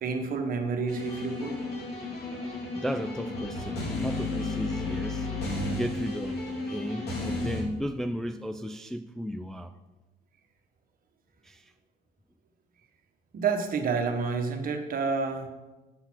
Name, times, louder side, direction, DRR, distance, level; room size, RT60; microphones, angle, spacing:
voice 1, 0.0-1.6 13.3-15.5, right 5 dB, 50° right, 1.3 m, -29 dB
sound 1, 0.9-7.6, left 2 dB, 65° left, 2.4 m, -33 dB
voice 2, 2.3-5.3 5.6-9.7 11.4-11.7, equal, ahead, 0.4 m, -35 dB
9.6 x 4.0 x 6.2 m
supercardioid pair, 90°, 18 cm